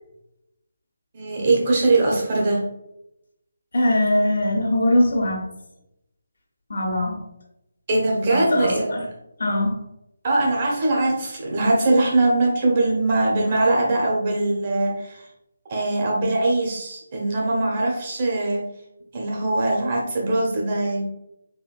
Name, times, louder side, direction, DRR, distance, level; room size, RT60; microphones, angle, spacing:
voice 1, 1.1-2.6 7.9-8.9 10.2-15.3 15.7-18.6 19.1-21.0, right 2 dB, 35° right, -2 dB, 1.3 m, -21 dB
voice 2, 3.7-5.4 6.7-7.2 8.3-9.0 9.4-9.8, left 1 dB, 70° left, 1 dB, 1.3 m, -21 dB
4.2 x 3.4 x 2.5 m, 0.83 s
figure-of-eight pair, 160°, 0 cm